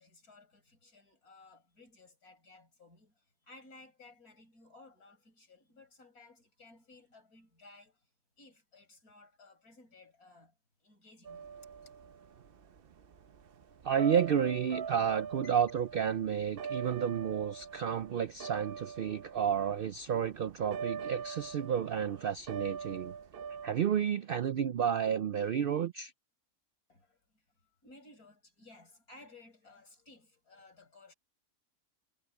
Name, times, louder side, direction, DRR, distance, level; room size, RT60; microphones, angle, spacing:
voice 1, 0.0-8.1 8.4-10.5 10.8-12.3 13.6-13.7 15.4-15.5 19.3-19.4 21.5-21.6 24.5-24.6 26.9-31.1, left 2 dB, 80° left, 6.9 m, -58 dB
sound 1, 11.2-23.7, right 6 dB, 50° right, 0.8 m, -43 dB
voice 2, 13.8-23.1 23.6-26.1, right 8 dB, 90° right, 0.4 m, -31 dB
omnidirectional pair, 1.6 m